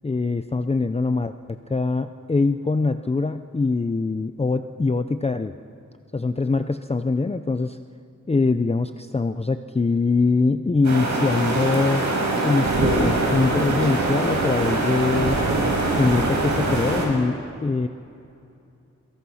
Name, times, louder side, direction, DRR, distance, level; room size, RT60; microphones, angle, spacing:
voice 1, 0.0-5.5 6.1-7.8 8.3-12.0 12.4-15.4 16.0-17.9, left 3 dB, 20° left, 9 dB, 0.6 m, -23 dB
sound 1, 10.8-17.1, right 2 dB, 65° right, 6.0 m, -23 dB
28.0 x 23.5 x 5.7 m, 2.6 s
wide cardioid pair, 120°, 31 cm